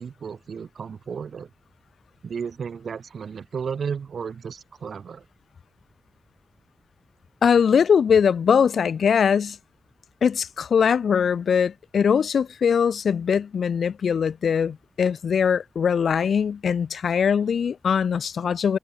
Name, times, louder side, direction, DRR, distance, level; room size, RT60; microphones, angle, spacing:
voice 1, 0.0-1.5 2.2-5.2, right 6 dB, 70° right, 1.0 m, -33 dB
voice 2, 7.4-9.6 10.2-18.8, left 7 dB, 80° left, 0.3 m, -21 dB
wide cardioid pair, 120°, 0 cm